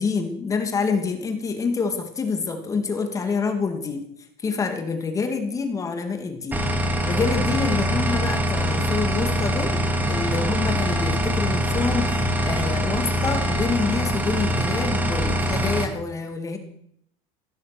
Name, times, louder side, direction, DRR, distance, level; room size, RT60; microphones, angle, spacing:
voice 1, 0.0-4.1 4.4-6.6 7.0-9.8 10.1-16.6, left 4 dB, 20° left, 6 dB, 2.6 m, -27 dB
sound 1, 6.5-15.9, equal, 10° right, 2.3 m, -23 dB
15.5 x 13.0 x 6.2 m, 0.70 s
cardioid pair, 145°, 15 cm